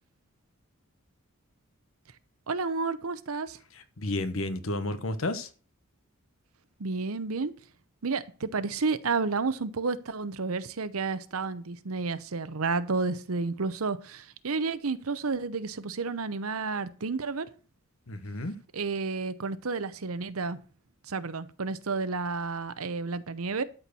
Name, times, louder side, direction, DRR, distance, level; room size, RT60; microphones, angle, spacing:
voice 1, 2.5-3.6 6.8-7.5 8.0-17.5 18.7-20.6 21.1-23.6, right 4 dB, 85° right, 0.8 m, -31 dB
voice 2, 3.7-5.5 18.1-18.6, left 2 dB, 75° left, 1.1 m, -32 dB
12.5 x 4.6 x 6.9 m
head